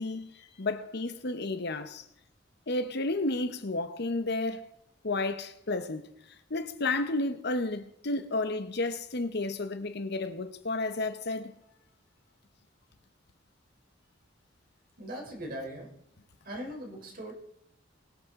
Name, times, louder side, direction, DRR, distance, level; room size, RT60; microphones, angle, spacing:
voice 1, 0.0-2.0 2.7-4.7 5.0-6.1 6.5-11.5, left 2 dB, 60° left, 1.0 m, -32 dB
voice 2, 15.0-15.9 16.4-17.3, equal, 50° right, 3.8 m, -39 dB
22.0 x 7.9 x 3.8 m
head